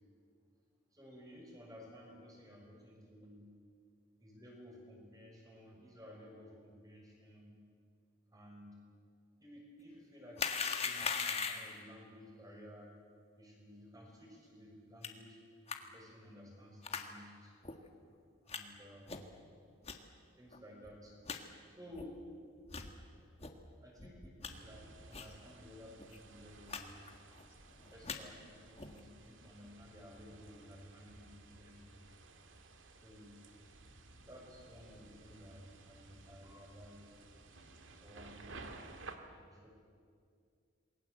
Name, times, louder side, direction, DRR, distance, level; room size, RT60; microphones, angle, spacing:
voice 1, 0.9-3.4 4.2-7.5 8.3-8.7 9.4-12.9 13.4-15.4 15.8-17.5 18.4-19.2 20.4-21.1 21.7-22.2 23.8-27.0 27.7-32.0 33.0-33.3 34.1-37.6 38.0-38.6 38.9-39.0 39.5-39.7, equal, 20° right, -1 dB, 6.5 m, -55 dB
sound 1, 10.4-11.8 15.0-15.1 15.7-15.8 16.8-17.1 17.6-17.7 18.5-18.6 19.1-19.3 19.8-20.0 20.5-20.6 20.9-21.0 21.3-21.4 21.9-22.1 22.7-22.9 23.4-23.5 24.0-24.5 25.1-25.3 25.6-25.7 26.0-26.2 26.7-26.8 27.1-27.5 27.9-28.2 28.8-29.0, left 5 dB, 30° left, 1.7 m, -39 dB
sound 2, 24.5-39.2, right 3 dB, 75° right, 2.2 m, -56 dB
28.0 x 21.5 x 8.0 m, 2.2 s
head